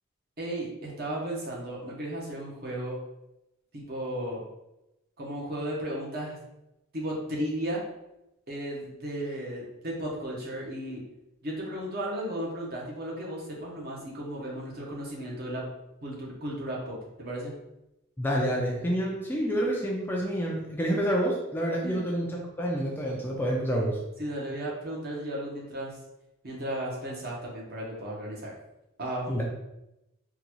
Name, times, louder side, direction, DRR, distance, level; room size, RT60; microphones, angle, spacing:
voice 1, 0.4-3.0 3.7-4.4 5.2-6.4 6.9-7.8 8.5-11.0 11.4-15.7 16.0-17.5 21.8-22.0 24.2-26.0 26.4-28.6 29.0-29.4, right 1 dB, 45° right, -3 dB, 0.9 m, -35 dB
voice 2, 18.2-24.0 29.3-29.4, equal, 10° left, -2 dB, 0.4 m, -28 dB
3.8 x 2.3 x 2.9 m, 0.90 s
head